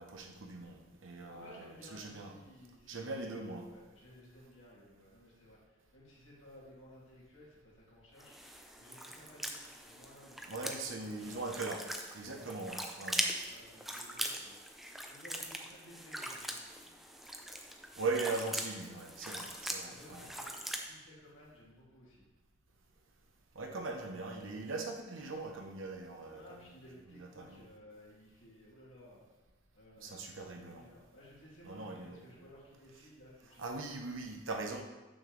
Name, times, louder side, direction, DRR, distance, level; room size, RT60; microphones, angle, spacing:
voice 1, 0.0-2.3 2.9-3.6 10.5-11.8 12.1-13.3 18.0-20.3 23.5-26.4 27.2-27.6 30.0-30.8 31.6-32.3 33.6-34.8, right 3 dB, 75° right, 2 dB, 0.9 m, -40 dB
voice 2, 1.2-11.5 12.2-12.5 13.5-14.6 15.1-17.0 19.8-22.2 26.3-29.2 29.7-33.9, left 1 dB, 80° left, -6 dB, 2.4 m, -57 dB
sound 1, 8.2-20.9, equal, ahead, 0.4 m, -41 dB
7.0 x 6.3 x 3.2 m, 1.2 s
head